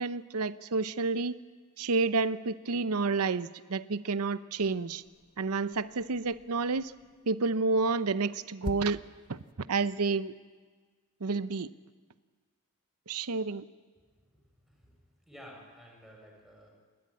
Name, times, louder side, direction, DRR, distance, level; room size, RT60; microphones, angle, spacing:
voice 1, 0.0-1.4 1.8-5.0 5.4-6.9 7.3-9.0 9.3-9.4 9.7-10.3 11.2-11.7 13.1-13.6, right 4 dB, 75° right, 14 dB, 0.7 m, -30 dB
sound 1, 4.5-9.5, left 1 dB, 40° left, 1.0 m, -47 dB
voice 2, 14.6-15.0 15.3-16.7, equal, ahead, -1 dB, 6.1 m, -52 dB
28.5 x 12.5 x 9.7 m, 1.5 s
head